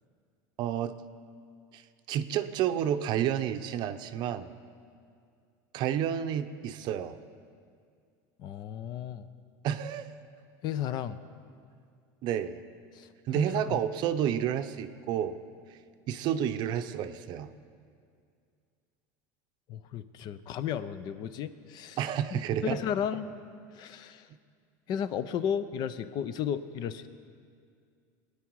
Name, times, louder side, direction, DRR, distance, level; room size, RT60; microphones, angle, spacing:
voice 1, 0.6-1.0 1.7-1.8 2.1-4.5 5.7-7.2 9.6-10.1 12.2-12.6 13.3-15.4 16.1-17.5 22.0-22.8, right 10 dB, 50° right, 10 dB, 0.7 m, -30 dB
voice 2, 8.4-9.3 10.6-11.2 12.9-13.1 13.3-13.8 19.7-22.0 22.6-23.3 23.7-24.3 24.9-27.1, left 8 dB, 45° left, 13 dB, 0.7 m, -34 dB
22.5 x 9.8 x 4.7 m, 2.2 s
supercardioid pair, 135°, 10 cm